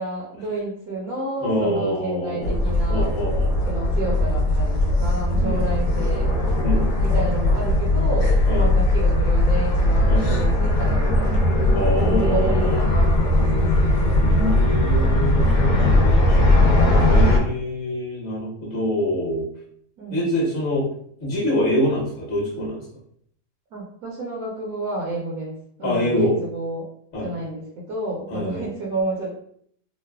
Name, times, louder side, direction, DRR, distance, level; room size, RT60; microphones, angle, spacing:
voice 1, 0.0-3.1 3.6-6.3 7.0-11.4 12.0-14.0 15.6-16.1 20.0-20.4 23.7-26.9 27.2-29.3, right 1 dB, 70° right, -4 dB, 1.1 m, -30 dB
voice 2, 1.4-2.5 2.9-3.5 5.3-5.6 6.6-6.8 8.5-8.7 10.1-10.3 11.7-12.8 14.2-16.7 17.0-19.5 20.1-20.8 21.2-22.8 25.8-26.4 27.1-27.3 28.3-28.7, equal, 40° left, -5 dB, 1.1 m, -25 dB
sound 1, 2.4-17.4, left 1 dB, 85° left, 1.1 m, -19 dB
3.0 x 2.0 x 2.2 m, 0.65 s
omnidirectional pair, 1.7 m